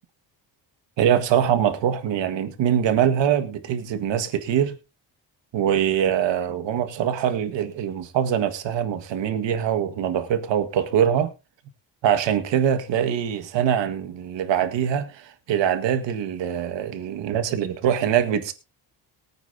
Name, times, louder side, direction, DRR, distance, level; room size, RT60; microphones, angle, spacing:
voice 1, 1.0-4.7 5.5-11.3 12.0-18.5, right 9 dB, 80° right, 1.8 m, -23 dB
22.5 x 9.0 x 2.8 m
cardioid pair, 155°, 43 cm